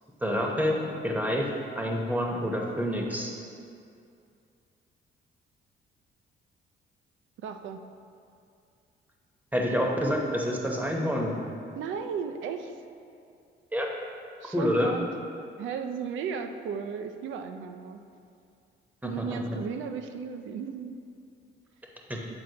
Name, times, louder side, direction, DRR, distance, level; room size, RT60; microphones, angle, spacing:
voice 1, 0.2-1.5 1.7-3.3 9.5-11.4 13.7-13.9 14.5-15.0 19.0-19.6 22.1-22.2, equal, 10° right, 0 dB, 0.9 m, -28 dB
voice 2, 7.4-7.8 11.8-12.8 14.4-15.1 15.6-18.0 19.0-21.0, right 6 dB, 75° right, 7 dB, 0.5 m, -35 dB
7.9 x 4.2 x 2.8 m, 2.5 s
cardioid pair, 90°, 20 cm